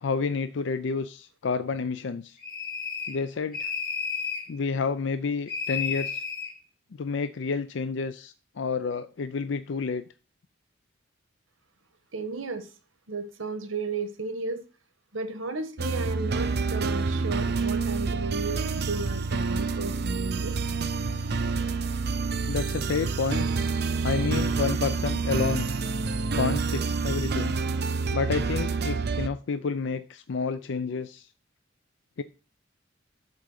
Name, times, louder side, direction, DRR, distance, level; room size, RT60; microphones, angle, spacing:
voice 1, 0.0-2.4 3.1-3.7 4.5-6.2 7.0-10.0 20.7-21.1 22.5-23.5 24.0-25.7 26.3-27.6 28.1-31.3 32.2-32.3, left 5 dB, 65° left, 11 dB, 0.4 m, -30 dB
sound 1, 2.4-3.2 3.5-4.5 5.5-6.5, left 5 dB, 45° left, 2.3 m, -32 dB
voice 2, 12.1-12.6 13.1-14.6 15.1-20.6, right 3 dB, 90° right, 8 dB, 1.4 m, -34 dB
sound 2, 15.8-29.3, right 4 dB, 55° right, 0.6 m, -28 dB
8.2 x 3.8 x 6.6 m, 0.34 s
head